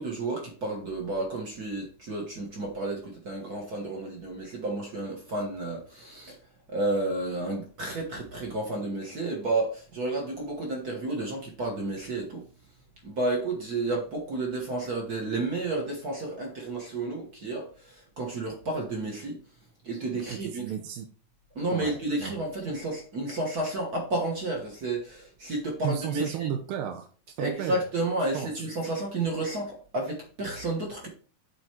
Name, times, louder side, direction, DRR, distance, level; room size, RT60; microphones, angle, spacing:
voice 1, 0.0-6.3 6.7-12.4 13.0-19.4 19.8-20.6 21.5-26.5 27.4-31.1, right 2 dB, 55° right, 0 dB, 1.0 m, -31 dB
voice 2, 20.1-21.1 21.7-22.3 25.8-27.1 27.4-27.8 28.3-28.5, right 9 dB, 90° right, 3 dB, 2.5 m, -33 dB
7.8 x 4.0 x 4.4 m, 0.39 s
omnidirectional pair, 3.9 m